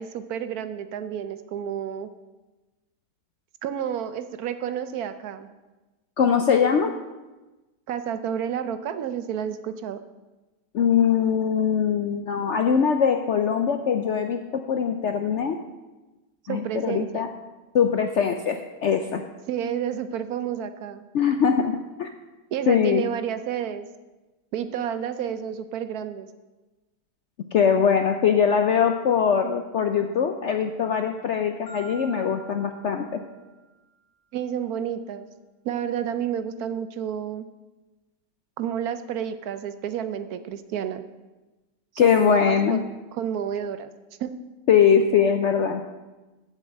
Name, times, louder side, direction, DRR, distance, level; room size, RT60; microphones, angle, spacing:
voice 1, 0.0-2.1 3.6-5.5 7.9-10.0 16.4-17.3 19.5-21.0 22.5-23.9 24.5-26.3 34.3-35.3 35.6-37.5 38.6-41.0 42.0-42.8 43.1-43.9 44.2-44.4, right 9 dB, 70° right, 11 dB, 1.0 m, -30 dB
voice 2, 6.2-6.9 10.7-14.4 14.7-15.6 16.5-17.3 17.7-19.2 21.1-22.1 22.7-23.0 27.5-33.2 42.0-42.8 44.7-45.8, left 7 dB, 70° left, 6 dB, 0.7 m, -22 dB
Marimba xylophone, 31.7-33.9, right 4 dB, 20° left, 1.5 m, -47 dB
7.9 x 7.4 x 7.3 m, 1.1 s
omnidirectional pair, 1.8 m